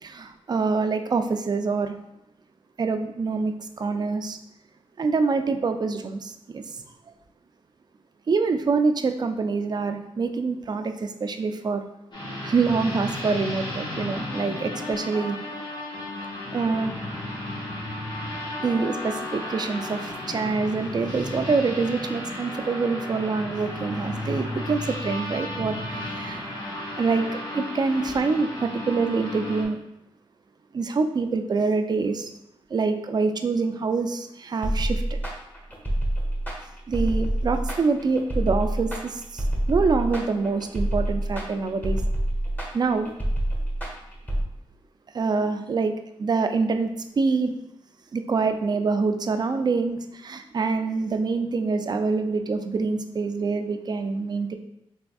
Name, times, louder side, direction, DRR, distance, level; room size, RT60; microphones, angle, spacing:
voice 1, 0.0-1.9 2.8-4.4 5.0-6.6 8.3-11.8 12.4-15.4 16.5-16.9 18.6-26.6 27.0-29.8 30.7-32.3 32.7-35.2 36.9-42.0 42.7-43.1 45.1-45.9 46.2-46.9 47.2-47.6 48.1-54.6, right 4 dB, 45° right, 7 dB, 0.4 m, -25 dB
sound 1, 12.1-29.7, left 1 dB, 50° left, 1.1 m, -34 dB
sound 2, 34.6-44.4, right 1 dB, 20° left, 1.2 m, -27 dB
3.4 x 3.4 x 2.3 m, 0.85 s
cardioid pair, 65°, 10 cm